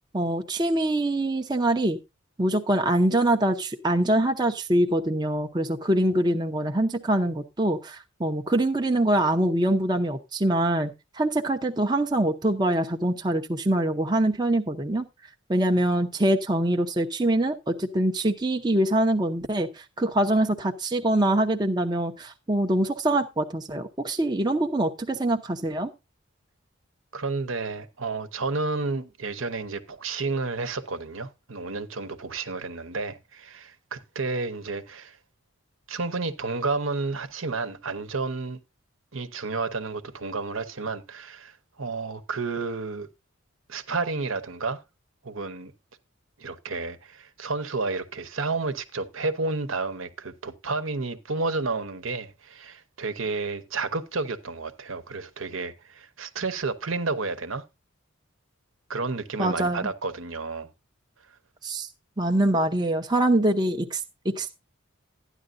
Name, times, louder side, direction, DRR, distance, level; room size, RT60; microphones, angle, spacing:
voice 1, 0.1-2.0 2.4-10.9 11.2-15.1 15.5-25.9 59.4-59.9 61.6-61.9 62.2-64.5, right 1 dB, 20° right, 0.7 m, -24 dB
voice 2, 27.1-35.2 35.9-38.6 39.1-43.1 43.7-44.8 45.2-45.7 46.4-57.6 58.9-60.7, right 3 dB, 75° right, 1.0 m, -31 dB
12.5 x 10.0 x 2.6 m
head